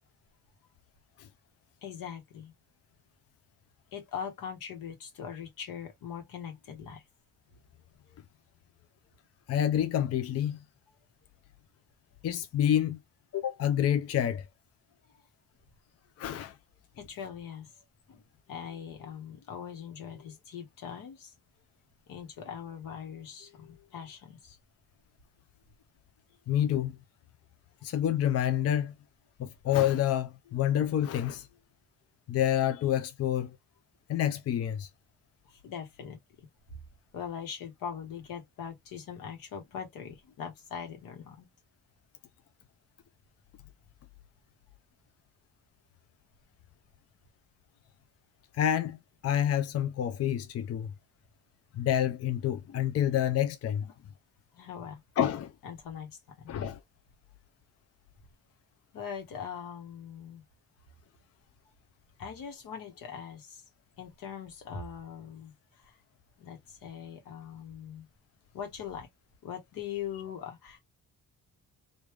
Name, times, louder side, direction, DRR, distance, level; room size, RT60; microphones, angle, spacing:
voice 1, 1.8-2.5 3.9-7.0 8.1-8.2 16.9-17.7 18.1-18.2 18.5-21.3 22.1-24.6 35.4-36.2 37.1-41.5 53.8-53.9 54.5-55.0 55.6-56.6 58.9-60.4 62.2-63.6 64.0-65.5 65.8-66.0 66.4-68.1 68.5-69.1 69.4-70.8, left 7 dB, 85° left, 1.3 m, -41 dB
voice 2, 9.5-10.6 12.2-13.0 13.3-14.4 16.2-16.6 26.5-27.0 27.8-28.9 29.4-31.5 32.3-33.6 34.1-34.9 48.5-49.0 49.2-50.9 51.7-53.9 55.2-55.5 56.5-56.8, left 10 dB, 50° left, 0.5 m, -28 dB
3.3 x 2.6 x 3.2 m
cardioid pair, 145°, 33 cm